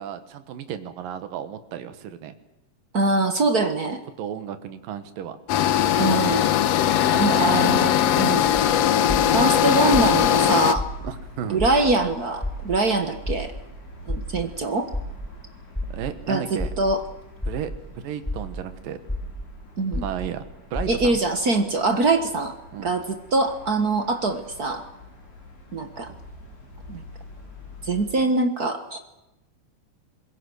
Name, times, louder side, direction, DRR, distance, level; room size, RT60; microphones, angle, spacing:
voice 1, 0.0-2.3 4.2-5.4 7.1-7.5 8.3-8.6 11.0-11.6 15.9-16.7 17.5-19.0 19.9-21.2 22.7-22.9, right 9 dB, 85° right, 10 dB, 3.2 m, -33 dB
voice 2, 2.9-4.0 6.0-6.5 7.2-8.4 9.3-10.8 11.5-13.5 14.1-14.9 16.3-16.4 16.8-17.0 19.8-20.0 20.9-22.5 22.8-24.8 25.7-26.1 26.9-27.0 27.8-29.0, right 3 dB, 45° right, 7 dB, 1.2 m, -23 dB
sound 1, 5.5-10.7, left 10 dB, 65° left, 1.8 m, -20 dB
sound 2, 8.5-8.6 9.1-9.4 9.9-10.3 10.7-11.1 11.6-11.9 12.4-12.8 13.3-13.6 14.1-14.4 14.9-15.3 15.7-16.1 16.6-16.9 17.4-17.8 18.3-18.6 19.1-19.4 19.9-20.3 20.7-21.1, left 1 dB, 5° left, 6.3 m, -29 dB
sound 3, 9.0-28.1, left 2 dB, 85° left, 7.1 m, -46 dB
25.5 x 21.5 x 6.3 m, 0.90 s
omnidirectional pair, 3.8 m